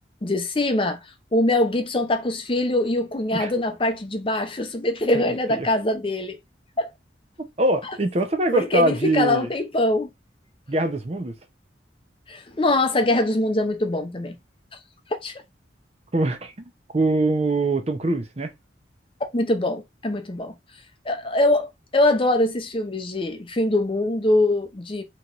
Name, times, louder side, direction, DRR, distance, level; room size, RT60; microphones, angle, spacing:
voice 1, 0.2-6.4 6.8-6.9 8.5-10.1 12.3-14.4 15.2-15.3 19.3-20.5 21.0-25.0, left 2 dB, 30° left, 0.6 m, -23 dB
voice 2, 5.1-5.7 7.6-9.5 10.7-11.3 16.1-18.5, right 2 dB, 35° right, 0.7 m, -23 dB
4.0 x 3.0 x 2.9 m
head